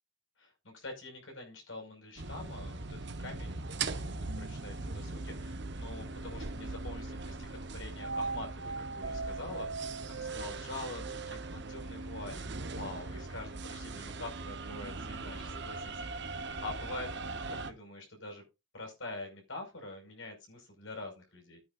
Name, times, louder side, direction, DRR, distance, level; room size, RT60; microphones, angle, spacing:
voice 1, 0.4-17.1 17.5-18.4 18.7-21.6, left 2 dB, 75° left, 3 dB, 5.7 m, -45 dB
sound 1, 2.2-17.7, right 3 dB, 60° right, 1.0 m, -39 dB
15.0 x 9.2 x 2.5 m, 0.26 s
head